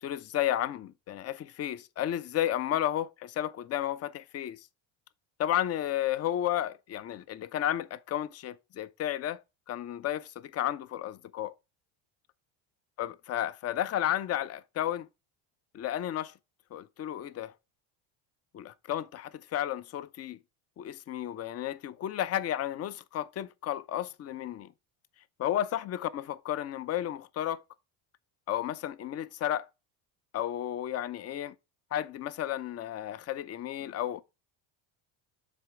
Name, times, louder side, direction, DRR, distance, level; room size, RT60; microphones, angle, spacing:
voice 1, 0.0-4.6 5.4-9.4 9.7-11.5 13.0-15.1 15.7-16.3 16.7-17.5 18.5-20.4 20.8-24.7 25.4-27.6 28.5-29.7 30.3-31.5 31.9-34.2, left 11 dB, 30° left, 0.5 m, -32 dB
7.7 x 3.1 x 4.7 m
supercardioid pair, 95°, 50 cm